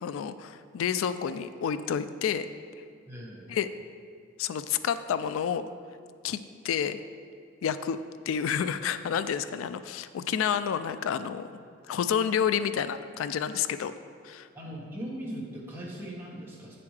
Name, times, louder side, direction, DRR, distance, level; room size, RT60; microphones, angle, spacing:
voice 1, 0.0-2.5 3.5-3.7 4.4-5.7 6.2-6.4 6.6-7.0 7.6-8.0 8.3-13.9 14.2-14.5, left 8 dB, 90° left, 13 dB, 0.3 m, -29 dB
voice 2, 3.1-3.5 14.5-16.8, right 1 dB, 10° right, -5 dB, 1.4 m, -39 dB
8.8 x 6.9 x 3.3 m, 2.3 s
head